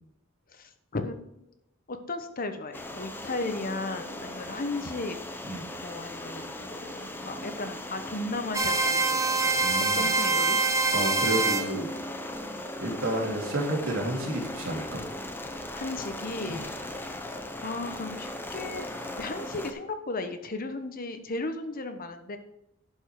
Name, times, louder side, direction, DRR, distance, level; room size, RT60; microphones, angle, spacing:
voice 1, 0.5-1.4 1.9-5.2 5.8-9.5 9.9-10.6 15.7-16.6 17.6-18.9 19.2-22.4, left 2 dB, 45° left, 8 dB, 1.0 m, -35 dB
sound 1, 2.7-19.7, left 1 dB, 10° left, 0.8 m, -38 dB
sound 2, 8.5-11.7, right 3 dB, 15° right, 0.9 m, -25 dB
voice 2, 9.6-10.1 10.9-11.9 12.8-15.0 16.5-16.6, right 1 dB, 85° right, -1 dB, 2.6 m, -30 dB
11.5 x 5.4 x 4.8 m, 0.83 s
head